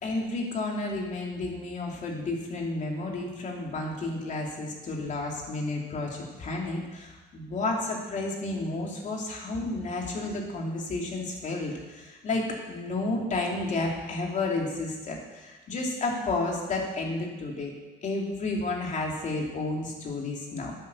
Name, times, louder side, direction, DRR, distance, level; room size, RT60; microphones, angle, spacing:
voice 1, 0.0-17.7 18.0-20.7, left 2 dB, 45° left, 0 dB, 2.9 m, -31 dB
10.5 x 8.9 x 7.0 m, 1.2 s
cardioid pair, 110°, 17 cm